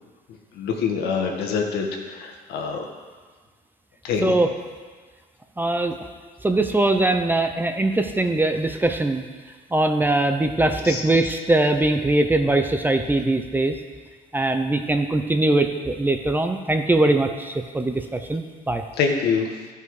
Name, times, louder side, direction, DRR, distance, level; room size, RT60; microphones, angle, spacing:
voice 1, 0.5-2.9 4.0-4.3 10.6-11.0 19.0-19.5, left 5 dB, 75° left, 2 dB, 1.5 m, -25 dB
voice 2, 5.6-5.9 6.4-9.2 9.7-13.8 14.3-18.8, right 2 dB, 10° right, 6 dB, 0.6 m, -21 dB
13.0 x 5.5 x 4.8 m, 1.5 s
cardioid pair, 110°, 17 cm